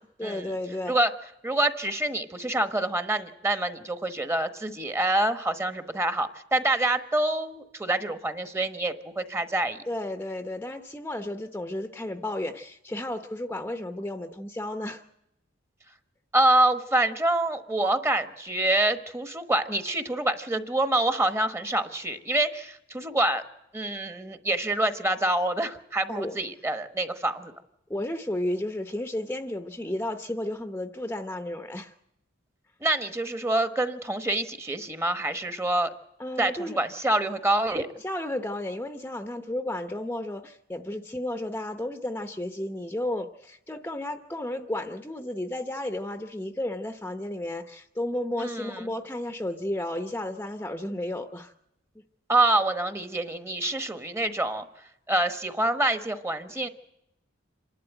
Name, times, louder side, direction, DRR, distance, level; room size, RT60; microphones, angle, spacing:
voice 1, 0.2-0.9 9.9-15.0 26.1-26.4 27.9-31.9 36.2-36.8 38.0-51.5, left 1 dB, 10° left, 7 dB, 0.8 m, -33 dB
voice 2, 1.4-9.8 16.3-23.4 23.7-27.5 32.8-35.9 36.4-37.9 48.4-48.9 52.3-54.7 55.1-56.7, right 2 dB, 15° right, 10 dB, 1.2 m, -26 dB
27.0 x 12.0 x 9.1 m, 0.84 s
head